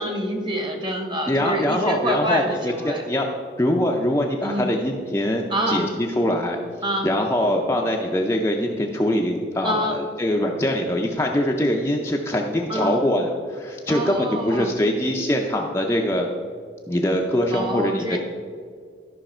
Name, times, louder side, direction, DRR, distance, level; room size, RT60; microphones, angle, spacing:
voice 1, 0.0-3.0 4.4-4.7 5.5-5.9 6.8-7.1 9.6-10.0 12.7-13.0 13.9-14.7 17.5-18.2, equal, 25° right, 3 dB, 1.2 m, -26 dB
voice 2, 1.3-3.3 3.6-6.6 7.0-16.3 16.9-18.2, left 1 dB, 15° left, 0 dB, 0.5 m, -23 dB
13.0 x 5.7 x 4.3 m, 2.1 s
head